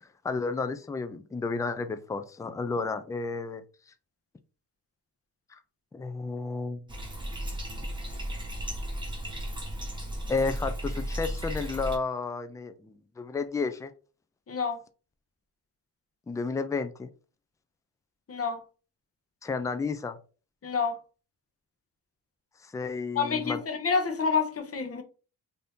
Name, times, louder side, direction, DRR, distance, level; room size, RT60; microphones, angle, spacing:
voice 1, 0.0-3.6 5.9-6.8 10.3-13.9 16.3-17.1 19.4-20.2 22.6-23.6, left 4 dB, 10° left, 0.3 m, -32 dB
Bathtub (filling or washing), 6.9-12.0, equal, 10° right, 1.1 m, -35 dB
voice 2, 14.5-14.8 18.3-18.6 20.6-21.0 23.2-25.0, left 5 dB, 35° left, 0.8 m, -28 dB
2.8 x 2.6 x 3.4 m
cardioid pair, 80°, 40 cm